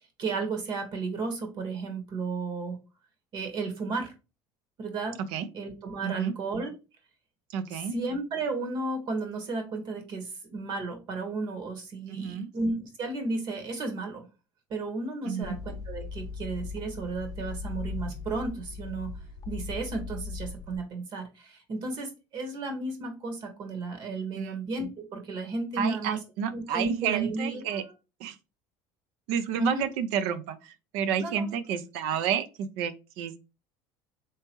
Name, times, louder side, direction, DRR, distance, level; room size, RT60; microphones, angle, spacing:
voice 1, 0.2-2.8 3.3-4.2 4.8-5.2 5.5-6.7 7.9-14.2 14.7-19.2 19.5-26.2 26.5-27.8 29.5-29.8 31.2-31.5, right 3 dB, 50° right, 1.3 m, -33 dB
voice 2, 6.0-6.3 7.5-7.9 12.1-12.5 15.3-15.5 24.4-24.6 25.8-27.8 28.2-28.4 29.3-33.4, right 8 dB, 75° right, 0.5 m, -30 dB
sound 1, 15.4-20.8, left 4 dB, 35° left, 0.7 m, -38 dB
3.4 x 2.9 x 3.0 m
supercardioid pair, 105°, 10 cm